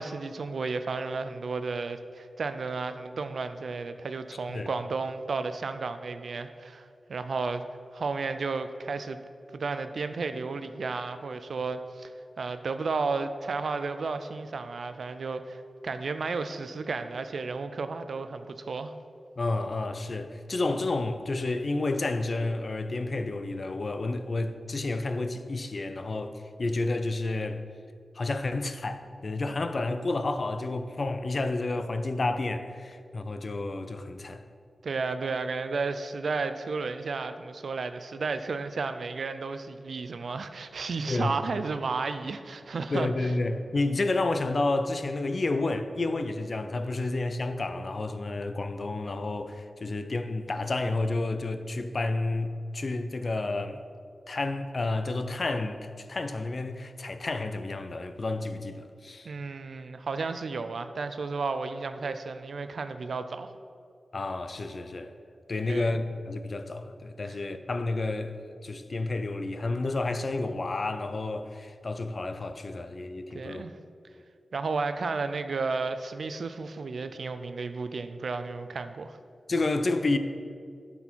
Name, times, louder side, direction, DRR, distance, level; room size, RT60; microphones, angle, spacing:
voice 1, 0.0-7.6 7.9-9.2 9.5-12.1 12.4-18.9 34.8-43.3 59.2-63.5 65.7-66.0 67.3-67.4 73.3-73.7 74.5-79.2, right 4 dB, 70° right, 0.4 m, -33 dB
voice 2, 19.4-27.6 28.1-34.4 41.1-41.4 42.9-53.8 54.3-59.3 64.1-65.1 65.5-73.7 79.5-80.2, left 2 dB, 45° left, 0.4 m, -30 dB
11.5 x 4.3 x 4.5 m
wide cardioid pair, 135°, 0 cm